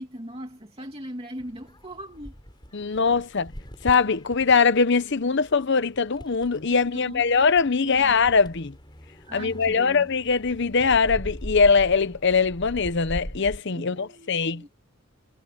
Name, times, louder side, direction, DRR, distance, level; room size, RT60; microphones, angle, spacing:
voice 1, 0.0-2.4 6.7-7.2 7.8-8.1 9.2-10.1 13.7-14.7, equal, 25° right, 2.6 m, -39 dB
sound 1, 1.4-13.6, equal, 20° left, 5.2 m, -41 dB
voice 2, 2.7-3.5 3.8-8.7 9.3-14.7, left 5 dB, 55° left, 0.8 m, -22 dB
head